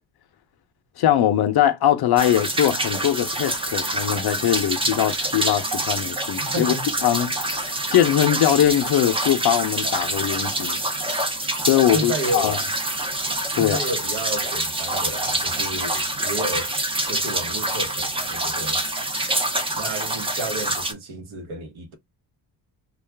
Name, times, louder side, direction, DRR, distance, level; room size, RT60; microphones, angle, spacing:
voice 1, 1.0-6.7 7.0-10.8 11.7-12.6 13.5-13.8, left 11 dB, 50° left, 0.6 m, -21 dB
sound 1, 2.2-20.9, right 1 dB, 10° right, 0.4 m, -26 dB
voice 2, 6.4-6.9 11.9-12.6 13.5-16.7 17.1-18.8 19.7-22.0, right 2 dB, 70° right, 1.0 m, -31 dB
2.4 x 2.2 x 3.2 m
cardioid pair, 130°, 49 cm